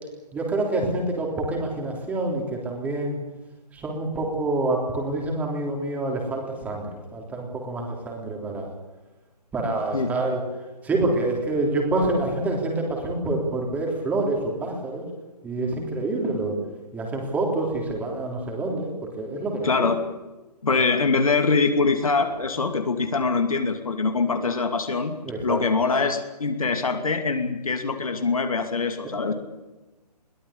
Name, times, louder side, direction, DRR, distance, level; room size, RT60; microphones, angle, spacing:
voice 1, 0.3-3.2 3.7-8.7 9.5-10.4 10.8-15.0 15.4-16.6 16.9-19.9 25.2-25.6 29.0-29.3, right 2 dB, 5° right, 1 dB, 3.5 m, -27 dB
voice 2, 19.6-20.0 20.6-25.1 25.4-29.3, left 4 dB, 55° left, 7 dB, 2.6 m, -23 dB
22.0 x 17.5 x 8.4 m, 1.1 s
figure-of-eight pair, 140°, 21 cm